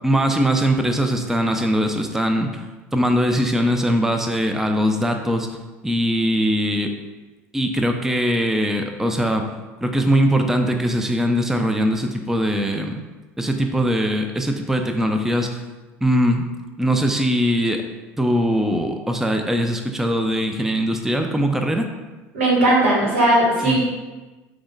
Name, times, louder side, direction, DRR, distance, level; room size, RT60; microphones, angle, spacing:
voice 1, 0.0-2.7 2.9-5.5 5.8-6.9 7.5-9.4 9.8-13.0 13.4-15.6 16.0-16.4 16.8-17.8 18.2-21.9 23.6-23.8, equal, 5° right, 5 dB, 0.4 m, -21 dB
voice 2, 22.3-23.8, right 1 dB, 85° right, -3 dB, 1.1 m, -17 dB
4.7 x 2.1 x 3.8 m, 1.2 s
hypercardioid pair, 75°, 7 cm